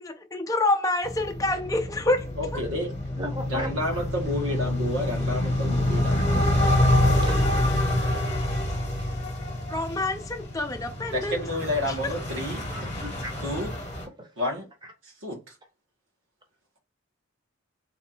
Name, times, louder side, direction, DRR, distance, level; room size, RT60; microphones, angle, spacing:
voice 1, 0.0-2.6 9.7-11.4 11.9-12.0, left 2 dB, 15° left, 0.5 m, -27 dB
sound 1, 1.0-14.1, left 1 dB, 30° left, 1.0 m, -27 dB
voice 2, 2.4-2.9 3.5-6.4 11.1-12.6 13.4-13.7 14.4-14.7 15.2-15.4, left 1 dB, 85° right, 1.5 m, -30 dB
voice 3, 3.2-4.1 6.1-6.2 6.6-7.6 8.9-9.0 12.7-13.3 14.2-14.3, equal, 20° right, 0.9 m, -37 dB
3.3 x 2.6 x 4.3 m
head